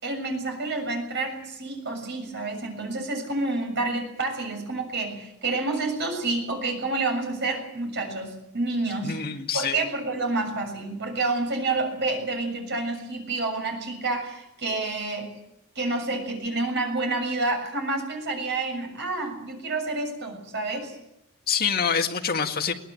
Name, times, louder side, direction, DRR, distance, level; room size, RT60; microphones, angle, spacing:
voice 1, 0.0-9.2 9.5-15.3 15.8-21.0, right 2 dB, 50° right, 4 dB, 7.0 m, -29 dB
voice 2, 9.0-9.8 21.5-22.7, left 6 dB, 45° left, 3 dB, 2.1 m, -26 dB
22.0 x 18.0 x 9.0 m, 0.83 s
head